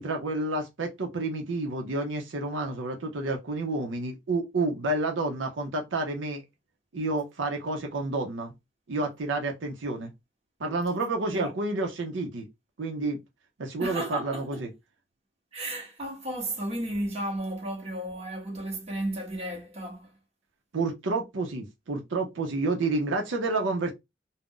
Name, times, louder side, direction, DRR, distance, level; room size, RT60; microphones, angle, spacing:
voice 1, 0.0-6.4 6.9-8.5 8.9-10.1 10.6-12.5 12.8-13.2 13.6-14.7 20.7-23.9, right 2 dB, 80° right, 0.6 m, -29 dB
voice 2, 13.8-14.6 15.5-20.1, right 1 dB, 35° right, 0.9 m, -33 dB
2.5 x 2.1 x 3.6 m
head